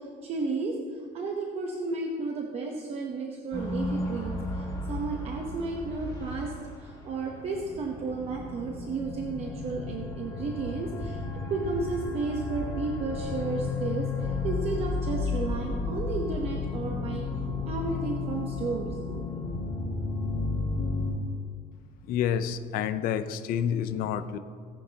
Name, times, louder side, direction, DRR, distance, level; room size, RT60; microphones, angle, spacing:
voice 1, 0.0-6.5 6.8-11.2 11.5-19.2, right 4 dB, 35° right, 1 dB, 1.0 m, -33 dB
sound 1, 3.5-21.1, left 3 dB, 20° left, 2.6 m, -33 dB
voice 2, 22.1-24.4, left 8 dB, 60° left, 11 dB, 0.6 m, -28 dB
18.0 x 10.0 x 2.9 m, 2.1 s
cardioid pair, 160°, 17 cm